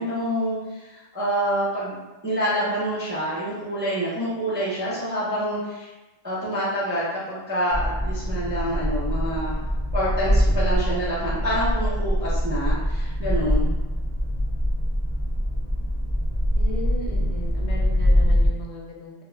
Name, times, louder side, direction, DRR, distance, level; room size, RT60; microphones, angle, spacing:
voice 1, 0.0-2.0 2.2-5.9 6.2-9.6 9.9-13.7, equal, 15° right, -10 dB, 0.5 m, -27 dB
sound 1, 7.7-18.5, equal, 35° left, 0.5 m, -23 dB
voice 2, 16.6-19.2, left 1 dB, 90° left, -2 dB, 0.9 m, -36 dB
2.3 x 2.0 x 3.1 m, 1.1 s
omnidirectional pair, 1.1 m